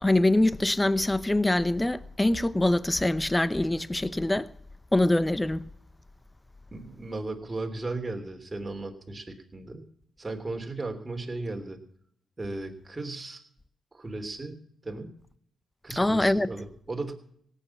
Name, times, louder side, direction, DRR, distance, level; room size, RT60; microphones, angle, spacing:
voice 1, 0.0-4.5 4.9-5.6 16.0-16.5, left 1 dB, 15° left, 0.8 m, -24 dB
voice 2, 6.7-9.8 10.2-11.8 12.4-13.4 13.9-15.1 15.8-17.1, right 2 dB, 25° right, 3.1 m, -36 dB
17.5 x 8.4 x 7.1 m
cardioid pair, 75°, 0 cm